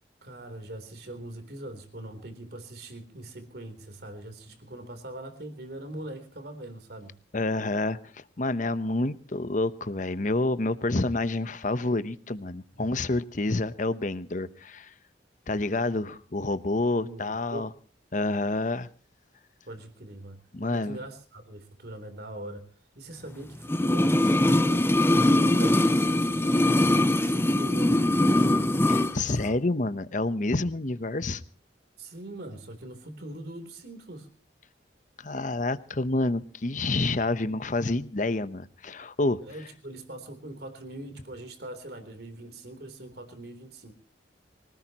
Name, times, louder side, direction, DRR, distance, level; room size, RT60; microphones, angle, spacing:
voice 1, 0.2-7.2 16.9-17.7 19.7-22.6 23.0-28.5 32.0-34.3 39.4-43.9, right 1 dB, 60° right, 8 dB, 3.6 m, -42 dB
voice 2, 7.3-14.9 15.5-17.7 18.1-18.9 20.5-21.0 28.9-31.4 35.2-39.4, left 2 dB, 45° left, 13 dB, 0.9 m, -28 dB
sound 1, 23.6-29.1 29.4-29.5, left 1 dB, 15° left, 0.6 m, -22 dB
24.5 x 18.0 x 3.0 m, 0.43 s
head